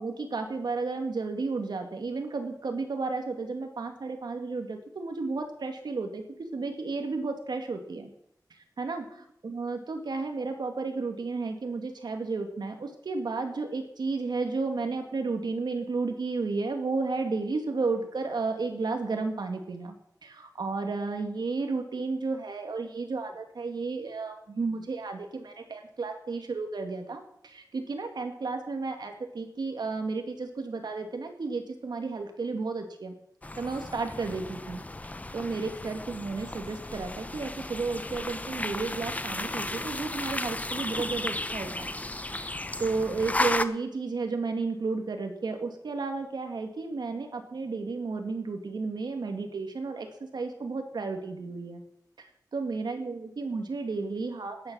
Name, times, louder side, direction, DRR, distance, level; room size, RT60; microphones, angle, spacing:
voice 1, 0.0-8.1 8.8-20.0 20.2-33.1 33.6-34.8 35.3-41.9 42.4-51.8 52.2-52.3 52.5-54.7, right 3 dB, 75° right, 5 dB, 2.2 m, -33 dB
sound 1, 33.4-43.7, left 2 dB, 20° left, 0.8 m, -34 dB
13.5 x 10.0 x 6.3 m, 0.74 s
wide cardioid pair, 90°, 7 cm